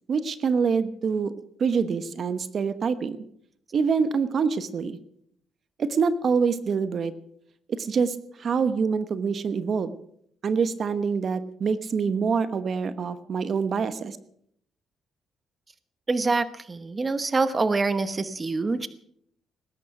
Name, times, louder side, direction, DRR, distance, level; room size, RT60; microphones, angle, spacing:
voice 1, 0.1-1.3 1.6-3.2 3.7-5.0 5.8-7.1 7.8-10.0 10.4-14.2, right 5 dB, 50° right, 12 dB, 1.1 m, -25 dB
voice 2, 16.1-18.9, right 3 dB, 30° right, 12 dB, 1.1 m, -25 dB
19.5 x 10.5 x 5.9 m, 0.68 s
cardioid pair, 90°, 0 cm